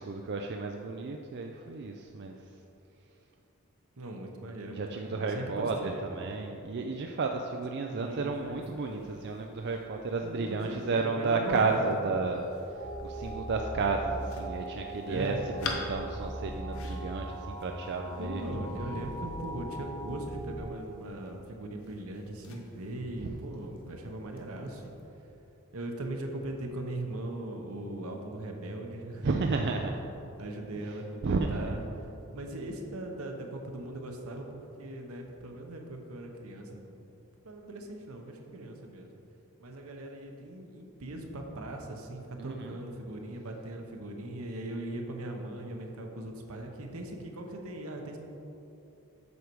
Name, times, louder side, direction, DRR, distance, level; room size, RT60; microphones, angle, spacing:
voice 1, 0.0-2.4 4.7-15.4 15.6-18.4 23.2-23.4 29.2-30.0 31.2-31.7 42.4-42.7, right 4 dB, 50° right, 3 dB, 0.4 m, -32 dB
voice 2, 4.0-6.0 7.9-8.4 10.2-12.0 15.1-15.4 18.2-24.8 25.7-29.5 30.4-31.8 32.3-37.0 37.4-39.1 39.6-48.2, right 1 dB, 75° right, 2 dB, 1.0 m, -39 dB
sound 1, 8.2-25.1, left 4 dB, 70° left, 0.9 m, -48 dB
sound 2, 12.7-20.6, right 1 dB, 35° left, 1.8 m, -39 dB
8.1 x 6.5 x 4.6 m, 2.9 s
head